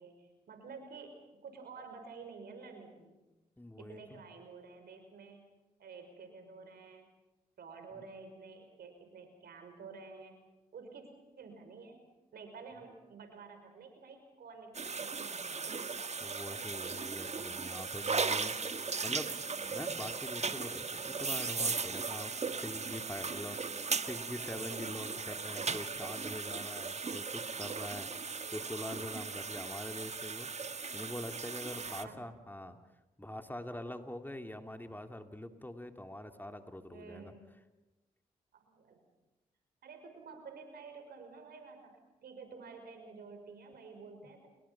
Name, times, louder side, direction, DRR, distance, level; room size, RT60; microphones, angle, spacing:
voice 1, 0.0-3.2 3.8-5.4 5.8-7.1 7.6-10.4 10.7-11.1 11.4-12.0 12.3-16.0 31.7-32.2 36.9-37.4 38.5-39.0 39.8-44.5, right 4 dB, 75° right, 6 dB, 5.6 m, -51 dB
voice 2, 3.6-4.2 16.2-19.3 19.6-30.5 30.9-32.8 33.2-37.3, left 1 dB, 10° left, 6 dB, 2.7 m, -44 dB
sound 1, 14.7-32.0, right 4 dB, 45° right, 1.6 m, -37 dB
30.0 x 22.0 x 6.0 m, 1.1 s
supercardioid pair, 40°, 16 cm